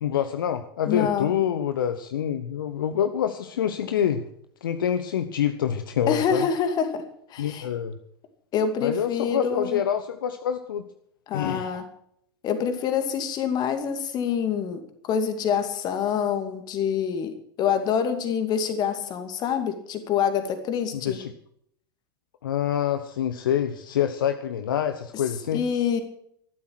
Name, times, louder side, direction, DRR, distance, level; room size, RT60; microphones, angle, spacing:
voice 1, 0.0-4.2 4.6-6.5 7.4-8.0 8.8-10.8 11.3-11.7 20.9-21.3 22.4-25.6, left 9 dB, 60° left, 9 dB, 1.0 m, -26 dB
voice 2, 0.9-1.3 6.1-7.0 7.3-7.7 8.5-9.8 11.3-11.8 12.4-21.2 25.5-26.0, left 7 dB, 35° left, 7 dB, 2.5 m, -26 dB
13.5 x 12.0 x 6.3 m, 0.69 s
figure-of-eight pair, 90°, 12 cm